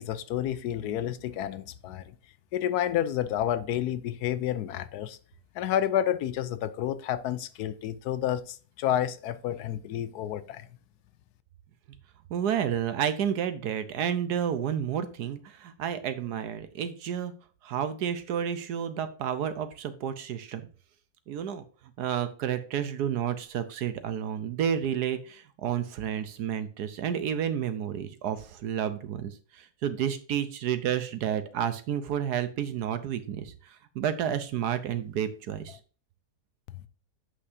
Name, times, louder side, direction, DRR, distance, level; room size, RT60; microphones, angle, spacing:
voice 1, 0.0-2.1 2.5-5.2 5.5-10.7, left 11 dB, 75° left, 1.1 m, -30 dB
voice 2, 12.3-17.3 17.6-20.7 21.3-21.6 22.0-35.8, right 9 dB, 80° right, 1.4 m, -31 dB
8.1 x 5.9 x 2.7 m
omnidirectional pair, 1.7 m